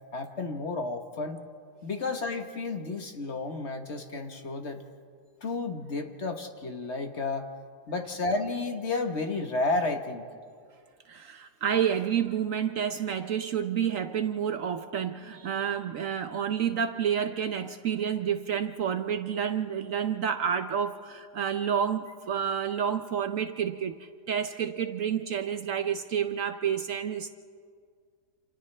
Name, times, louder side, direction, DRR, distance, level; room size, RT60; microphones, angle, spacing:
voice 1, 0.1-1.4 1.8-4.8 5.4-7.5 7.9-10.3, left 3 dB, 45° left, 5 dB, 1.3 m, -32 dB
voice 2, 11.1-27.3, right 8 dB, 60° right, 9 dB, 0.9 m, -29 dB
28.5 x 28.0 x 3.3 m, 2.1 s
omnidirectional pair, 1.7 m